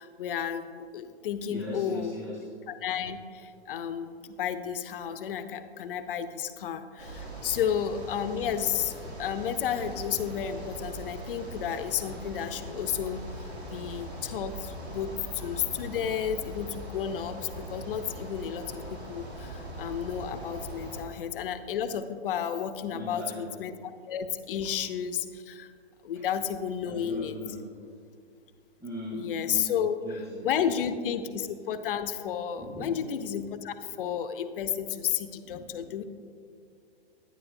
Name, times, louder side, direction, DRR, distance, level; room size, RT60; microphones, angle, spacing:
voice 1, 0.0-2.1 2.8-23.7 24.1-25.7 26.0-27.4 29.1-30.0 30.4-36.0, left 8 dB, 55° left, 10 dB, 0.7 m, -32 dB
voice 2, 1.5-2.5 22.9-23.5 26.1-26.2 26.8-27.6 28.8-30.7 32.6-33.1 33.5-33.9 35.4-35.9, left 1 dB, 10° right, -6 dB, 1.4 m, -40 dB
sound 1, 7.0-21.0, right 1 dB, 80° right, 2.4 m, -41 dB
11.0 x 9.8 x 2.6 m, 2.3 s
hypercardioid pair, 130°, 32 cm